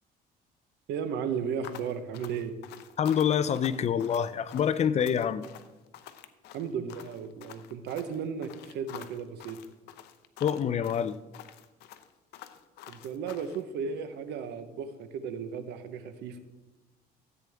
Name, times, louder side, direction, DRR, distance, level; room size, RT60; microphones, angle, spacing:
voice 1, 0.9-2.6 6.5-9.6 12.9-16.4, right 6 dB, 80° right, 1.0 m, -35 dB
sound 1, 1.6-13.6, left 11 dB, 85° left, 0.7 m, -48 dB
voice 2, 3.0-5.4 10.4-11.2, left 8 dB, 40° left, 0.5 m, -26 dB
14.0 x 8.4 x 3.5 m
cardioid pair, 110°, 17 cm